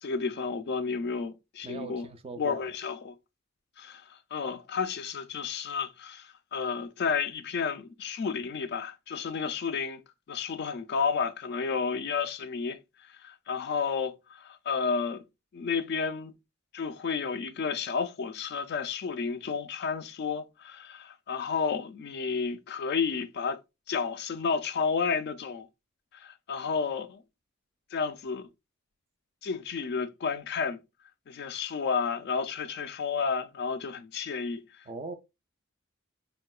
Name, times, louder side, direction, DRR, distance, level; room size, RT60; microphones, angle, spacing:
voice 1, 0.0-2.1 2.4-3.2 3.8-10.0 10.3-12.8 13.2-15.2 15.5-16.3 16.7-23.6 23.9-25.7 26.1-27.2 27.9-28.5 29.4-30.8 31.3-34.8, left 5 dB, 55° left, 0.3 m, -31 dB
voice 2, 1.6-2.7 34.9-35.1, right 3 dB, 30° right, 0.3 m, -40 dB
3.7 x 2.1 x 2.3 m
head